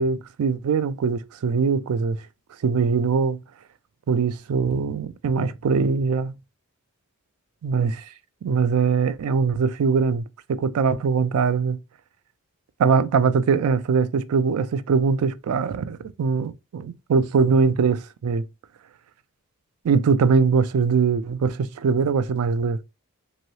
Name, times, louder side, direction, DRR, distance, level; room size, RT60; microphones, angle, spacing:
voice 1, 0.0-2.2 2.6-3.4 4.1-6.3 7.6-8.1 8.4-11.8 12.8-18.4 19.8-22.8, right 5 dB, 75° right, 0.3 m, -22 dB
3.1 x 2.7 x 2.7 m
head